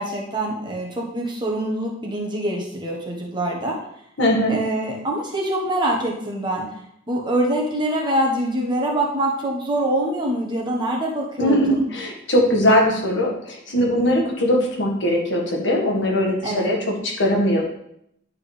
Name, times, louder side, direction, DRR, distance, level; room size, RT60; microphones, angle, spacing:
voice 1, 0.0-3.8 4.5-6.6 7.1-11.8 16.4-16.7, right 1 dB, 25° right, -1 dB, 1.2 m, -24 dB
voice 2, 4.2-4.6 11.4-17.6, equal, 65° left, 0 dB, 1.6 m, -20 dB
10.5 x 4.8 x 3.4 m, 0.74 s
head